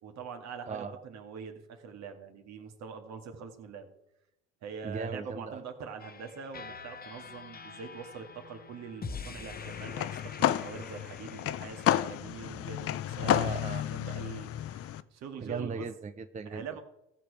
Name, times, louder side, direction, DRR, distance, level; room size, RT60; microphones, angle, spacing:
voice 1, 0.0-3.9 4.6-13.4 13.8-15.9 16.4-16.8, right 6 dB, 60° right, 5 dB, 2.1 m, -44 dB
voice 2, 4.8-5.6 13.2-13.9 15.4-16.6, right 5 dB, 25° right, 9 dB, 0.7 m, -37 dB
sound 1, 6.0-12.2, left 4 dB, 30° left, 1.1 m, -45 dB
sound 2, 9.5-15.0, left 12 dB, 50° left, 0.6 m, -31 dB
16.0 x 6.7 x 4.8 m, 0.86 s
hypercardioid pair, 70°, 31 cm